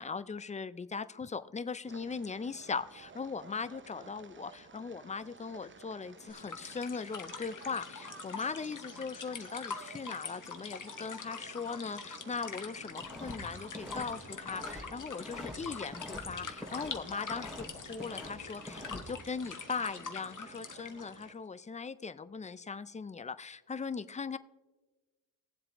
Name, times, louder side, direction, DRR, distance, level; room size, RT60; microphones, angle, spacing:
voice 1, 0.0-24.4, left 5 dB, 20° left, 14 dB, 0.3 m, -39 dB
sound 1, 1.8-21.3, right 5 dB, 25° right, 0.6 m, -54 dB
sound 2, 6.3-21.3, left 5 dB, 45° left, 1.1 m, -44 dB
sound 3, 13.0-13.4 13.6-14.8 15.1-16.2 16.5-17.7 17.9-19.0, left 1 dB, ahead, 2.6 m, -45 dB
19.5 x 7.6 x 3.0 m, 1.2 s
cardioid pair, 85°, 44 cm